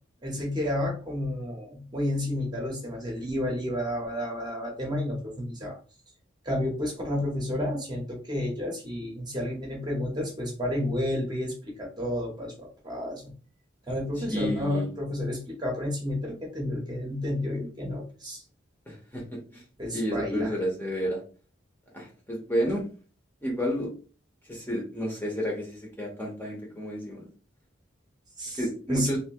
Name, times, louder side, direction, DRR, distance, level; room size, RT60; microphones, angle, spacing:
voice 1, 0.2-5.8 6.4-13.3 13.9-18.4 19.8-20.5 28.4-28.6 28.9-29.1, left 1 dB, 20° right, -1 dB, 1.0 m, -31 dB
voice 2, 14.2-14.9 18.9-19.2 19.5-19.6 19.9-21.2 21.9-22.8 23.4-23.9 24.5-27.3 28.6-29.2, equal, 10° left, -2 dB, 0.9 m, -30 dB
3.4 x 2.8 x 2.9 m, 0.38 s
head